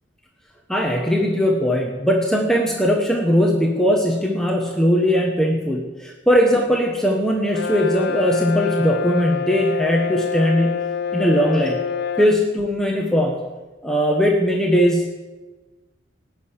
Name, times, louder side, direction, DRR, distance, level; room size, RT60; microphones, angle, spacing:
voice 1, 0.7-11.8 12.2-13.4 13.8-15.1, equal, 5° left, 0 dB, 1.4 m, -19 dB
Brass instrument, 7.5-12.4, left 7 dB, 55° left, 0.7 m, -26 dB
18.0 x 6.7 x 9.9 m, 1.2 s
head